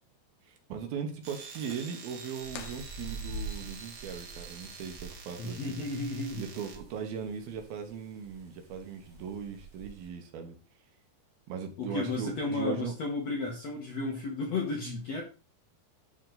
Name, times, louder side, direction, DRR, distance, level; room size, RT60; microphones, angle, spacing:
voice 1, 0.4-5.8 6.4-10.6 11.5-12.9, right 7 dB, 70° right, 4 dB, 2.8 m, -39 dB
sound 1, 1.2-6.8, right 5 dB, 55° right, 1.5 m, -47 dB
sound 2, 2.4-10.1, right 2 dB, 25° right, 2.5 m, -46 dB
sound 3, 2.5-3.7, left 12 dB, 80° left, 2.5 m, -48 dB
voice 2, 5.4-6.4 11.8-15.2, left 3 dB, 60° left, 0 dB, 1.8 m, -33 dB
12.0 x 4.5 x 3.9 m, 0.34 s
omnidirectional pair, 4.7 m